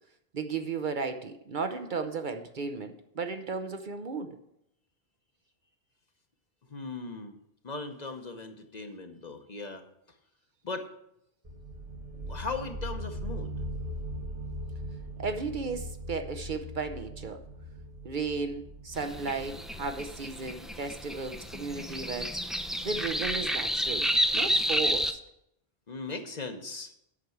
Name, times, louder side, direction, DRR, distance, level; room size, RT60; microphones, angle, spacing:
voice 1, 0.3-4.4 15.2-17.4 18.0-22.4 22.8-24.1 24.3-25.2, right 4 dB, 55° right, 8 dB, 0.8 m, -34 dB
voice 2, 6.7-7.4 7.6-9.8 10.6-10.9 12.1-13.5 25.9-26.9, left 3 dB, 45° left, 6 dB, 1.0 m, -38 dB
sound 1, 11.4-22.9, equal, 35° right, 1.2 m, -41 dB
sound 2, 18.9-25.1, equal, ahead, 0.4 m, -30 dB
8.5 x 6.0 x 7.9 m, 0.78 s
omnidirectional pair, 1.1 m